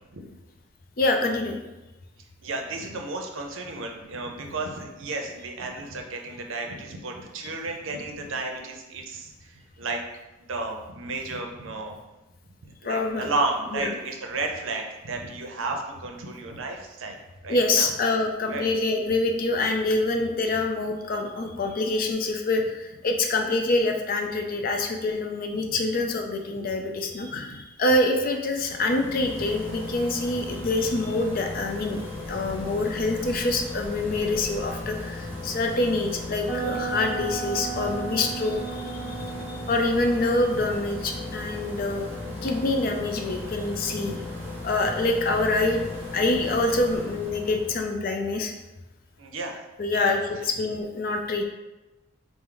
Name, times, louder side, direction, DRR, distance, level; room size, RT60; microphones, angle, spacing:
voice 1, 1.0-1.6 12.8-13.3 13.7-13.9 17.5-39.2 39.7-42.1 42.4-44.2 44.6-45.8 46.1-48.5 49.8-51.4, left 2 dB, 45° left, 3 dB, 0.4 m, -26 dB
voice 2, 2.4-10.0 10.5-12.0 12.6-17.2 17.4-17.9 18.5-18.7 25.6-25.8 27.3-27.6 32.5-32.6 39.2-39.4 43.6-43.7 43.9-44.2 49.2-49.6 49.9-50.1, right 3 dB, 75° right, 2 dB, 0.6 m, -33 dB
sound 1, 28.6-48.0, left 2 dB, 10° right, 1.1 m, -36 dB
sound 2, 36.4-44.4, right 5 dB, 20° left, 1.1 m, -37 dB
4.5 x 2.0 x 3.7 m, 1.1 s
head